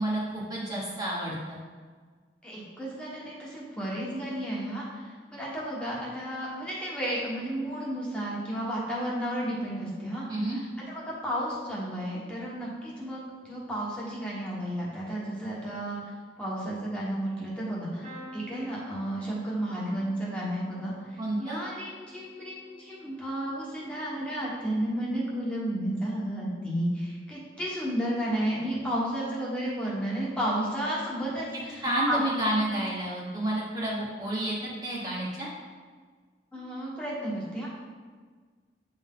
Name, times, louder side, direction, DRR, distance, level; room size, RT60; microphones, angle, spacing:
voice 1, 0.0-1.6 10.3-10.6 21.2-21.6 31.8-34.5 34.8-35.5, right 1 dB, 20° right, -7 dB, 1.1 m, -30 dB
voice 2, 2.4-10.2 10.5-10.6 10.9-16.1 16.4-32.2 36.5-37.7, right 1 dB, 5° left, -7 dB, 1.4 m, -32 dB
sound 1, 18.0-25.9 26.3-26.8 28.1-28.3 28.5-28.6, left 1 dB, 50° right, 1.5 m, -51 dB
8.0 x 3.6 x 3.7 m, 1.5 s
head